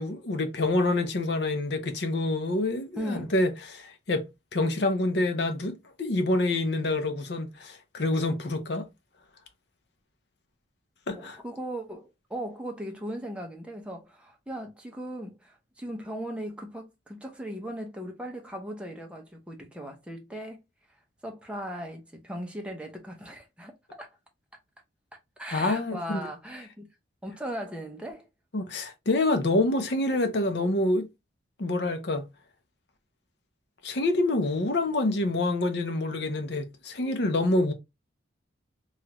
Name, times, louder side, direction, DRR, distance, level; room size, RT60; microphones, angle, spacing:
voice 1, 0.0-8.9 11.1-11.4 25.5-26.2 28.5-31.1 31.6-32.3 33.8-37.7, left 2 dB, 65° left, 0.6 m, -27 dB
voice 2, 3.0-3.3 11.1-20.6 21.2-24.1 25.4-26.9 27.2-28.3, equal, 5° right, 0.6 m, -38 dB
3.1 x 2.4 x 2.9 m
head